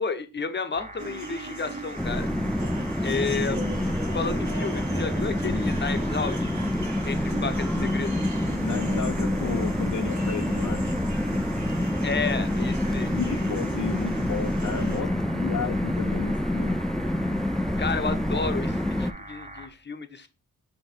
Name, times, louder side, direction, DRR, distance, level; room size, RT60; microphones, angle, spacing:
voice 1, 0.0-2.3 3.0-3.6 4.1-6.5 7.1-8.1 12.0-13.1 17.8-20.3, left 4 dB, 30° left, 0.8 m, -31 dB
sound 1, 0.7-19.7, right 1 dB, 20° right, 0.9 m, -43 dB
sound 2, 1.0-15.0, right 2 dB, 50° right, 1.4 m, -39 dB
sound 3, 2.0-19.1, left 1 dB, ahead, 0.3 m, -27 dB
voice 2, 8.6-10.8 13.1-16.8, left 7 dB, 60° left, 0.6 m, -33 dB
7.4 x 2.9 x 4.5 m
wide cardioid pair, 85°, 34 cm